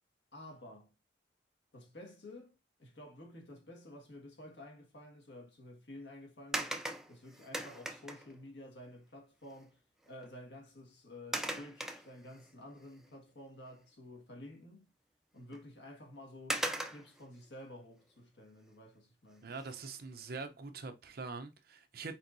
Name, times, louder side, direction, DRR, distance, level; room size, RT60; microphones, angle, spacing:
voice 1, 0.3-0.9 1.7-6.7 7.1-9.8 10.1-14.9 15.3-19.5, left 1 dB, 65° left, 1.6 m, -51 dB
sound 1, 6.5-8.4 9.6-9.7 10.1-10.3 11.3-12.5 13.0-13.1 15.5-15.6 16.5-17.2 19.5-19.9 20.4-20.5, right 1 dB, 5° right, 0.4 m, -38 dB
voice 2, 19.4-22.1, right 4 dB, 55° right, 0.7 m, -44 dB
4.5 x 4.4 x 2.6 m
head